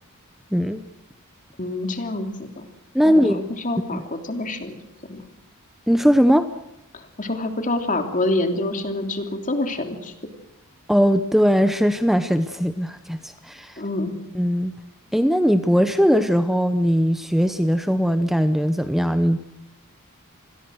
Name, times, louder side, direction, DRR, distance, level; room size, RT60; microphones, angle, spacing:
voice 1, 1.6-2.7 3.0-5.2 6.9-10.1 13.8-14.2, left 2 dB, 40° left, 6 dB, 3.1 m, -27 dB
voice 2, 2.9-3.4 3.9-4.0 5.9-6.5 10.9-13.8 14.3-14.7 15.1-19.4, equal, ahead, 9 dB, 0.8 m, -19 dB
28.0 x 21.5 x 6.4 m, 0.88 s
head